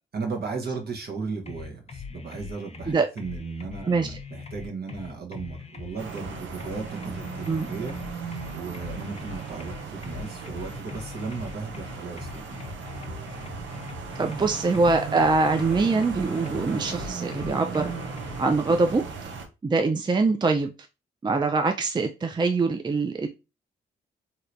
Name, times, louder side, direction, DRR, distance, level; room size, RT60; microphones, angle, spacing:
voice 1, 0.1-13.2, right 4 dB, 50° right, 1.1 m, -36 dB
sound 1, 1.5-18.4, left 5 dB, 30° left, 0.8 m, -41 dB
sound 2, 6.0-19.5, right 5 dB, 70° right, 0.8 m, -37 dB
voice 2, 14.2-17.9 18.4-19.0 19.6-20.7 21.2-23.3, right 3 dB, 20° right, 0.4 m, -23 dB
3.2 x 2.8 x 2.6 m
supercardioid pair, 50°, 20 cm